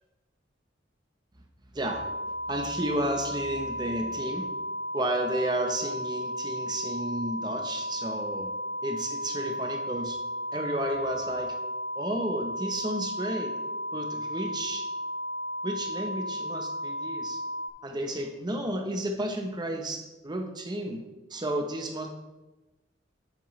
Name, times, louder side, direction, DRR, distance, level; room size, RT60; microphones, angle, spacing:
voice 1, 1.7-2.0 2.5-4.4 4.9-8.5 8.8-10.2 10.5-11.5 12.0-13.5 13.9-14.9 15.6-17.4 17.8-21.0 21.3-22.1, right 1 dB, 20° right, 3 dB, 0.8 m, -32 dB
sound 1, 1.8-17.7, equal, 65° left, 0.6 m, -34 dB
7.4 x 7.4 x 3.1 m, 1.1 s
head